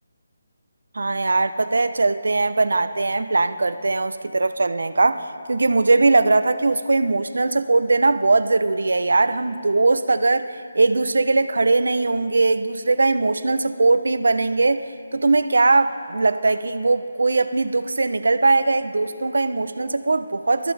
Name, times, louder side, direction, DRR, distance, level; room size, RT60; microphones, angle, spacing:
voice 1, 0.9-20.7, right 3 dB, 85° right, 11 dB, 0.7 m, -20 dB
30.0 x 14.0 x 3.4 m, 2.3 s
hypercardioid pair, 165°, 0 cm